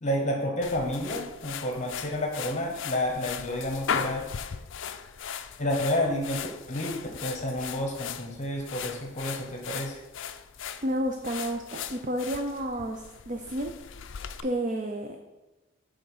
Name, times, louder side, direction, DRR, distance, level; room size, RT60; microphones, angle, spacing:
voice 1, 0.0-4.5 5.6-10.0, left 1 dB, 35° left, 2 dB, 0.8 m, -30 dB
sound 1, 0.6-14.4, left 7 dB, 60° left, 0.4 m, -38 dB
voice 2, 10.8-13.7 14.0-14.1 14.4-15.2, equal, 35° right, 4 dB, 0.5 m, -31 dB
9.0 x 3.8 x 5.4 m, 1.1 s
head